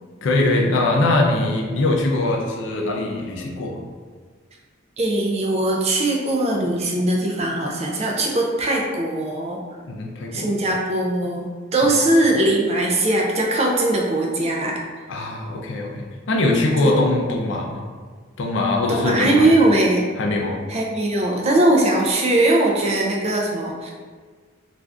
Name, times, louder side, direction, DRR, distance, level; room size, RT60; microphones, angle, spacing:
voice 1, 0.2-3.8 9.8-10.5 11.9-12.0 15.1-17.8 18.4-19.6 20.2-20.6, left 2 dB, 60° left, 0 dB, 0.4 m, -22 dB
voice 2, 5.0-9.6 10.3-11.5 11.7-14.8 15.2-15.3 16.8-16.9 18.9-20.0 20.7-23.9, right 1 dB, 30° right, -1 dB, 0.4 m, -20 dB
2.5 x 2.3 x 3.3 m, 1.6 s
head